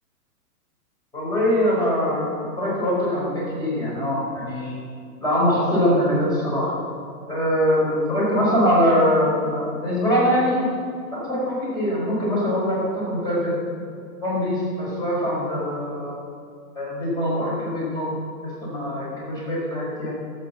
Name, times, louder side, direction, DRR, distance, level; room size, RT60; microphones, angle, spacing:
voice 1, 1.1-4.8 5.2-6.7 7.3-10.6 11.1-13.6 14.2-16.1 16.7-18.1 18.4-20.1, equal, 10° left, -6 dB, 4.4 m, -23 dB
16.5 x 7.6 x 7.4 m, 2.3 s
hypercardioid pair, 165°, 46 cm